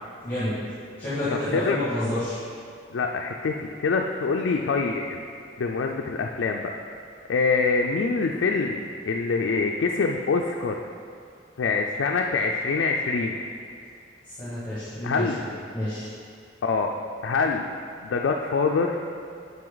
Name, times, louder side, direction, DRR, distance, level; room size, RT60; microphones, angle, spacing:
voice 1, 0.2-0.5 1.0-2.4 14.2-16.1, left 1 dB, 10° left, -13 dB, 1.8 m, -29 dB
voice 2, 1.3-1.8 2.9-5.2 5.6-6.7 7.3-10.8 11.6-13.4 15.0-15.4 16.6-16.9 17.2-17.6 18.0-19.0, left 4 dB, 70° left, 2 dB, 0.4 m, -25 dB
7.6 x 5.6 x 3.9 m, 2.4 s
head